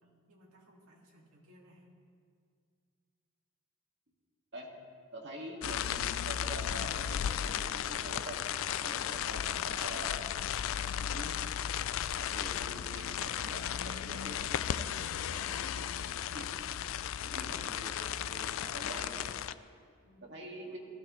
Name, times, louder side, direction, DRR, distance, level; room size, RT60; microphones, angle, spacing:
voice 1, 0.0-1.9 20.0-20.3 20.6-20.8, equal, 80° right, -1 dB, 2.2 m, -61 dB
voice 2, 5.1-10.3 11.0-11.3 12.1-16.0 16.3-16.4 17.2-19.3 20.3-20.8, right 1 dB, 50° right, -1 dB, 2.1 m, -46 dB
sound 1, 5.6-19.5, left 9 dB, 65° left, 0.3 m, -35 dB
19.0 x 14.0 x 3.2 m, 2.2 s
head